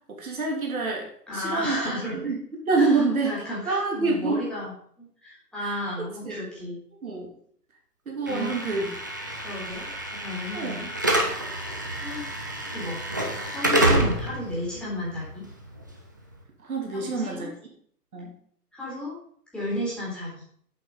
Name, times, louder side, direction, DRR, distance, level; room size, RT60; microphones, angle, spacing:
voice 1, 0.1-2.4 2.6-3.4 3.6-4.4 5.6-5.8 6.2-6.4 7.0-7.3 8.1-8.9 10.5-10.9 16.6-17.5 18.1-18.3, right 3 dB, 60° right, 0 dB, 3.2 m, -27 dB
voice 2, 1.3-2.3 2.8-4.7 5.0-6.8 8.3-8.5 9.4-10.8 11.4-12.3 12.7-13.0 13.5-15.4 17.0-17.5 18.7-19.1 19.5-20.3, left 1 dB, ahead, -7 dB, 3.8 m, -33 dB
Slam / Alarm, 8.3-16.3, right 1 dB, 15° right, 0.5 m, -28 dB
8.2 x 7.8 x 5.2 m, 0.62 s
figure-of-eight pair, 130°, 48 cm